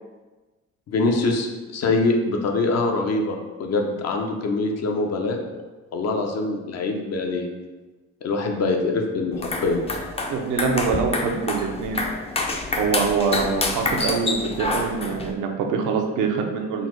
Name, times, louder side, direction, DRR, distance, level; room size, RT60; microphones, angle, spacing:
voice 1, 0.9-5.4 5.9-7.5 8.2-9.8, left 3 dB, 55° left, 2 dB, 0.7 m, -24 dB
sound 1, 9.3-15.3, left 2 dB, 20° left, 0.4 m, -27 dB
voice 2, 10.3-12.0 12.8-16.9, right 5 dB, 85° right, 3 dB, 0.6 m, -24 dB
3.9 x 2.0 x 4.4 m, 1.2 s
cardioid pair, 90°, 30 cm